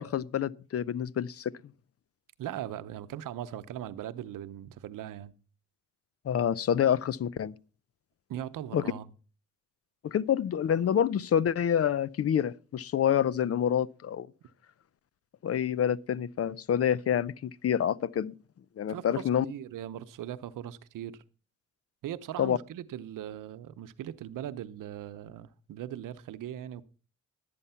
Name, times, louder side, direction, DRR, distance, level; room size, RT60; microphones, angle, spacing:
voice 1, 0.0-1.5 6.3-7.5 8.7-8.8 10.0-14.3 15.4-18.3 18.8-19.5 22.4-22.6, left 9 dB, 50° left, 0.6 m, -27 dB
voice 2, 2.4-5.3 8.3-9.1 18.9-21.2 22.0-26.8, right 11 dB, 80° right, 0.8 m, -39 dB
12.0 x 8.5 x 5.7 m
cardioid pair, 75°, 31 cm